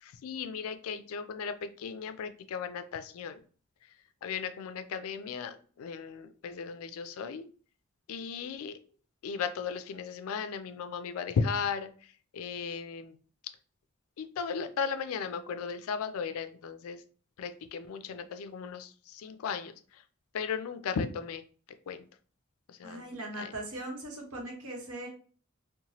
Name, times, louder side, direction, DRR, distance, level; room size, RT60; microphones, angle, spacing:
voice 1, 0.0-3.4 4.2-7.5 8.1-8.8 9.2-11.9 12.3-13.2 14.2-17.0 17.4-19.7 20.3-21.4 21.9-22.0 22.8-23.0 23.4-23.5, left 6 dB, 80° left, 11 dB, 0.3 m, -36 dB
voice 2, 22.8-25.1, right 1 dB, 85° right, 0 dB, 0.9 m, -39 dB
2.7 x 2.2 x 2.9 m, 0.41 s
head